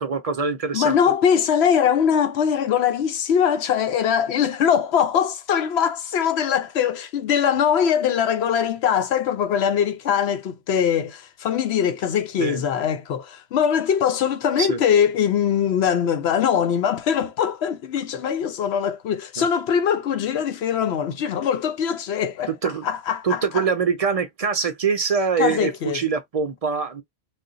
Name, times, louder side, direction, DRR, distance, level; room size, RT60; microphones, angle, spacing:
voice 1, 0.0-1.0 12.4-12.7 14.6-14.8 19.4-19.5 22.6-22.9 23.2-27.0, right 5 dB, 45° right, 0.6 m, -24 dB
voice 2, 0.7-22.5 22.8-23.4 25.4-26.0, left 8 dB, 85° left, 0.9 m, -22 dB
2.5 x 2.3 x 3.8 m
omnidirectional pair, 1.1 m